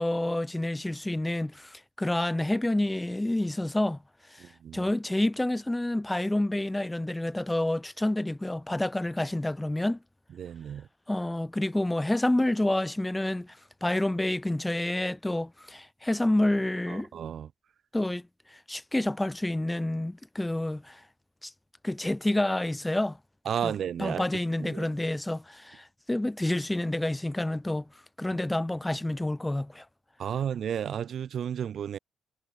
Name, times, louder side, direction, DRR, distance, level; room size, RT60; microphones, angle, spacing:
voice 1, 0.0-4.0 4.3-4.5 4.7-10.0 11.1-17.1 17.9-18.2 18.5-21.0 21.4-21.5 21.8-23.2 23.6-27.8 28.2-29.8, left 1 dB, 10° left, 2.9 m, -28 dB
voice 2, 4.4-4.8 10.4-10.9 17.1-17.5 23.4-24.2 24.6-24.9 30.2-32.0, right 8 dB, 60° right, 4.8 m, -32 dB
cardioid pair, 90°, 0 cm